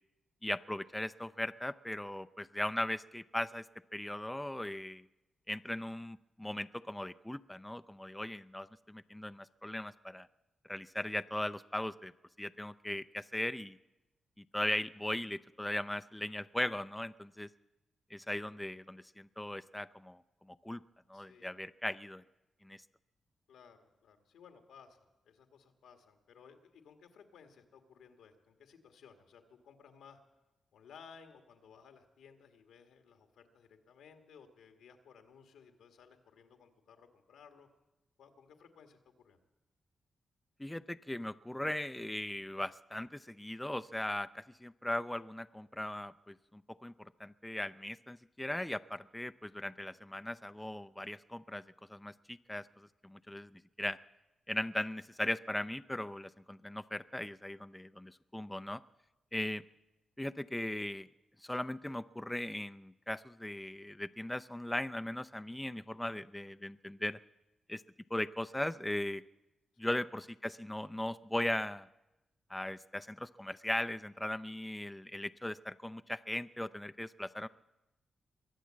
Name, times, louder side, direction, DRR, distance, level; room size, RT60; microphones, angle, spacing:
voice 1, 0.4-3.6 3.9-5.0 5.5-10.3 10.7-12.1 12.4-13.8 14.5-17.5 18.1-20.2 20.6-20.8 21.1-22.2 22.6-22.8 40.6-51.6 51.9-54.0 54.5-58.8 59.3-59.6 60.2-61.1 61.4-67.2 67.7-67.8 68.1-69.2 69.8-71.9 72.5-77.5, left 1 dB, 10° left, 11 dB, 0.5 m, -38 dB
voice 2, 21.1-21.6 23.5-30.2 30.7-37.7 38.2-39.4, left 6 dB, 90° left, 6 dB, 1.6 m, -59 dB
23.0 x 8.2 x 7.5 m, 0.97 s
cardioid pair, 60°, 0 cm